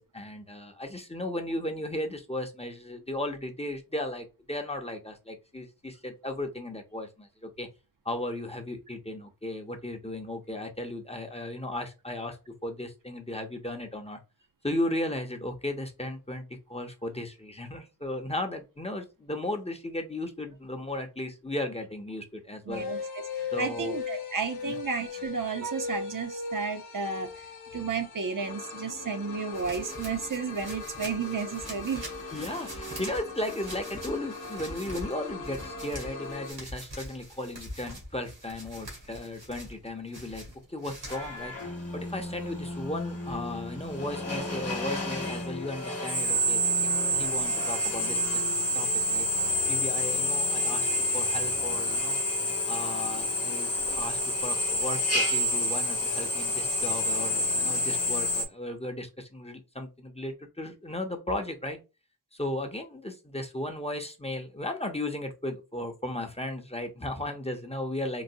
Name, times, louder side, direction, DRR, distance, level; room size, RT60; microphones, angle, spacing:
voice 1, 0.0-7.7 8.0-12.4 12.6-14.2 14.6-22.9 23.5-24.0 24.7-24.8 32.3-40.4 40.7-41.5 41.9-46.6 47.1-48.4 48.7-49.3 49.7-50.9 51.1-52.2 52.7-61.8 62.3-68.2, left 1 dB, 15° left, 0.6 m, -35 dB
sound 1, 22.7-36.5, left 4 dB, 70° left, 0.8 m, -39 dB
voice 2, 22.7-23.0 23.3-27.3 27.7-32.0, right 5 dB, 60° right, 0.6 m, -32 dB
sound 2, 29.5-41.4, equal, 85° right, 1.7 m, -44 dB
Drill, 41.1-58.4, left 1 dB, 40° left, 1.0 m, -29 dB
3.9 x 2.0 x 2.6 m
wide cardioid pair, 60°, 37 cm